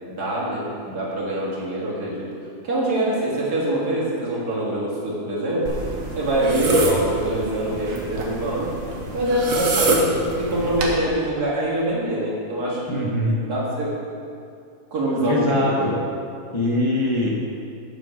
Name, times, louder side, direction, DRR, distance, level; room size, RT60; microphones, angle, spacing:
voice 1, 0.1-2.3 2.6-5.8 6.2-8.7 9.1-13.0 13.4-13.9 14.9-15.9, right 1 dB, 80° right, -6 dB, 2.4 m, -24 dB
sound 1, 5.7-11.0, right 2 dB, 60° right, 1.4 m, -25 dB
voice 2, 12.9-13.4 15.3-15.9 16.5-17.5, left 1 dB, 25° left, -4 dB, 0.6 m, -22 dB
8.1 x 6.7 x 5.0 m, 2.4 s
omnidirectional pair, 1.7 m